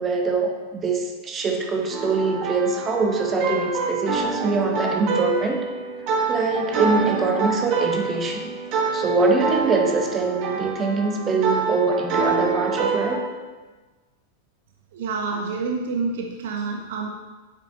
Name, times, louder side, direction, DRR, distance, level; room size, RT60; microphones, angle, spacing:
voice 1, 0.0-5.7 6.3-8.5 8.9-13.2, right 3 dB, 25° right, 3 dB, 1.2 m, -23 dB
sound 1, 1.9-13.2, right 4 dB, 40° right, 1.7 m, -26 dB
voice 2, 14.9-17.1, right 4 dB, 55° right, 3 dB, 0.8 m, -28 dB
9.7 x 7.8 x 3.1 m, 1.3 s
figure-of-eight pair, 90°, 0 cm